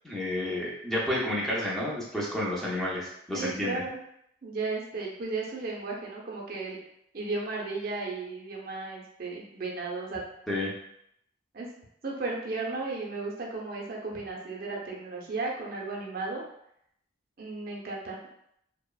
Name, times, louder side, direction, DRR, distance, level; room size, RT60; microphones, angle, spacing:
voice 1, 0.0-3.8 10.5-10.7, left 1 dB, ahead, -6 dB, 0.5 m, -30 dB
voice 2, 3.3-4.0 4.4-6.8 7.1-10.2 11.5-11.7 12.0-16.4 17.4-18.2, right 3 dB, 50° right, -2 dB, 0.5 m, -34 dB
2.9 x 2.0 x 2.3 m, 0.74 s
head